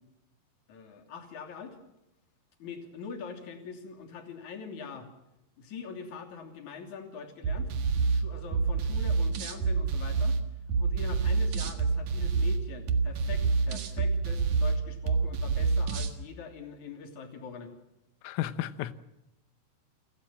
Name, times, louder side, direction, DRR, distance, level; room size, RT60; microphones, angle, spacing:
voice 1, 0.7-1.8 2.6-5.1 5.6-7.7 8.1-10.4 10.8-17.7, left 5 dB, 40° left, 3.8 m, -43 dB
sound 1, 7.4-16.2, right 4 dB, 55° right, 2.2 m, -28 dB
voice 2, 18.2-18.9, left 13 dB, 85° left, 3.6 m, -33 dB
29.0 x 17.5 x 7.6 m
omnidirectional pair, 5.7 m